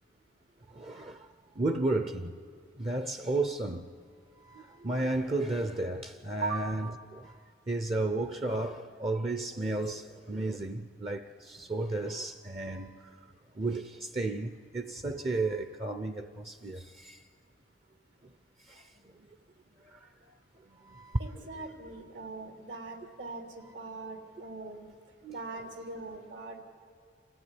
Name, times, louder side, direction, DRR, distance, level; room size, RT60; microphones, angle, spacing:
voice 1, 0.7-1.3 1.5-2.4 2.7-3.9 4.4-7.4 7.7-13.2 13.5-17.2 18.7-19.1 19.9-20.3 20.7-21.2 25.2-25.3, right 2 dB, 30° right, 0.7 m, -33 dB
voice 2, 6.4-6.7 21.2-23.4 23.7-24.8 25.3-26.6, right 4 dB, 80° right, 3.3 m, -40 dB
27.0 x 15.0 x 9.8 m
head